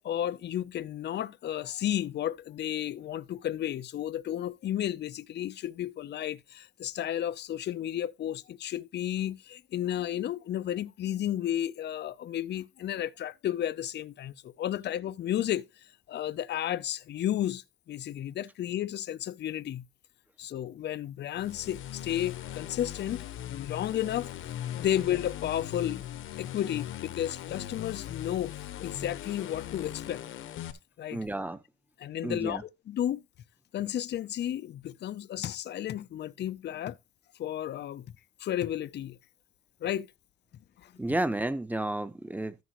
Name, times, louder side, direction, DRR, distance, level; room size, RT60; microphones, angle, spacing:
voice 1, 0.0-15.6 16.1-19.9 20.4-24.3 24.7-26.0 26.3-30.2 31.0-31.2 32.0-32.6 32.9-33.2 33.7-37.0 37.4-38.1 38.4-39.2 39.8-40.1 40.8-40.9, left 11 dB, 60° left, 0.6 m, -32 dB
sound 1, 21.3-30.7, left 11 dB, 85° left, 1.2 m, -39 dB
voice 2, 31.1-31.6 32.2-32.6 41.0-42.6, right 1 dB, 10° right, 1.0 m, -31 dB
14.0 x 6.1 x 3.0 m
cardioid pair, 90°, 20 cm